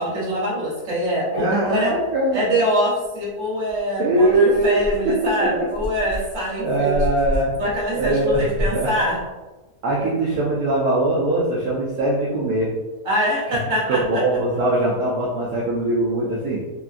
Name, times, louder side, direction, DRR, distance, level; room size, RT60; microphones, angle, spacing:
voice 1, 0.0-1.9 2.3-7.0 7.6-9.2 13.0-14.2, equal, 50° right, -7 dB, 1.4 m, -24 dB
voice 2, 1.3-2.4 4.0-5.7 6.6-7.5 7.9-8.4 8.7-8.9 9.8-12.7 13.9-16.6, right 1 dB, 75° right, -6 dB, 1.1 m, -21 dB
sound 1, 3.7-3.8 4.2-9.3, equal, 10° left, 0.9 m, -31 dB
3.4 x 2.2 x 2.4 m, 1.2 s
omnidirectional pair, 1.7 m